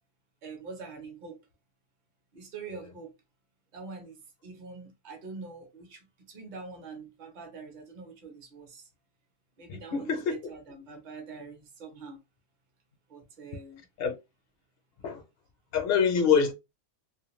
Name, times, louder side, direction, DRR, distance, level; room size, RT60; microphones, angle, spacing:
voice 1, 0.4-1.4 2.3-3.1 3.7-8.9 9.6-12.2 13.1-13.8, right 4 dB, 45° right, 0.8 m, -44 dB
voice 2, 9.7-10.4 14.0-14.1 15.0-15.2 15.7-16.5, left 6 dB, 60° left, 0.8 m, -25 dB
2.4 x 2.2 x 3.0 m
omnidirectional pair, 1.3 m